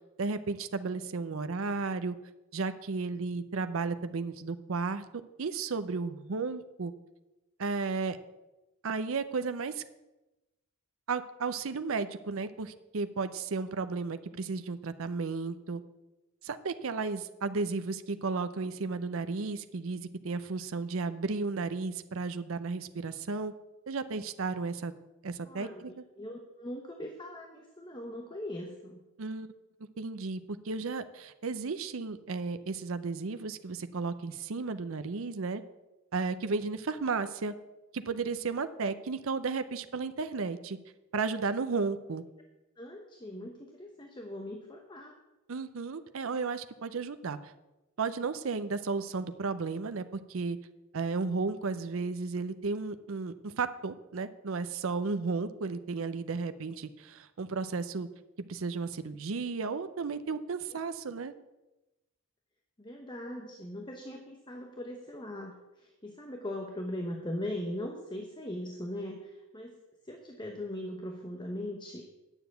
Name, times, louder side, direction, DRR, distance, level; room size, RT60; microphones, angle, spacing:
voice 1, 0.0-2.2 2.5-6.9 7.6-8.2 8.8-9.8 11.1-15.8 16.4-23.5 23.9-24.9 25.2-25.9 29.2-29.5 30.0-35.6 36.1-37.5 37.9-40.8 41.1-42.2 45.5-47.4 48.0-50.6 50.9-58.1 58.5-61.3, right 4 dB, 65° right, 11 dB, 0.6 m, -34 dB
voice 2, 25.4-25.8 26.2-29.0 42.8-45.2 62.8-69.8 70.0-72.0, left 1 dB, 20° left, 2 dB, 0.9 m, -40 dB
9.9 x 7.0 x 7.9 m, 1.0 s
head